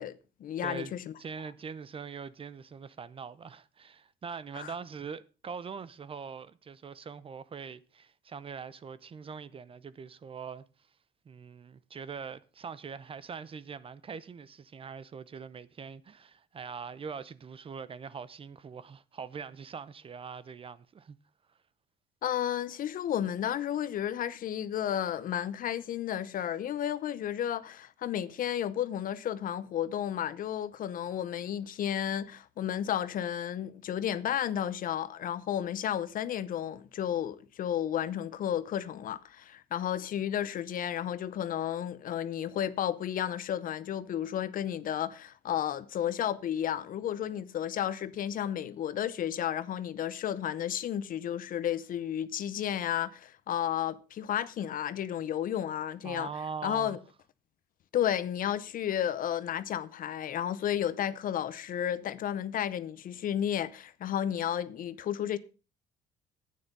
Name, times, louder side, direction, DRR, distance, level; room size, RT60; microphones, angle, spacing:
voice 1, 0.0-1.1 4.6-4.7 22.2-56.3 56.6-57.0 57.9-65.4, left 10 dB, 55° left, 0.9 m, -32 dB
voice 2, 0.6-10.6 11.3-21.2 56.0-57.0, right 6 dB, 35° right, 0.7 m, -42 dB
10.5 x 9.5 x 5.3 m
cardioid pair, 110°, 17 cm